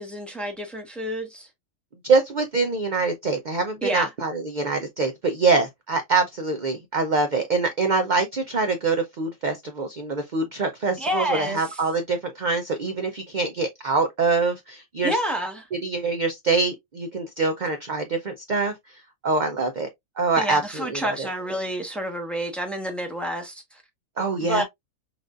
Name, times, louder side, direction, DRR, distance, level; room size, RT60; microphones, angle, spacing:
voice 1, 0.0-1.5 3.8-4.1 11.0-11.6 15.0-15.7 20.4-23.8 24.4-24.6, equal, ahead, 1.0 m, -28 dB
voice 2, 2.0-15.2 15.8-19.9 20.2-21.3 24.2-24.6, right 3 dB, 55° right, 0.5 m, -24 dB
6.0 x 2.6 x 2.4 m
omnidirectional pair, 1.6 m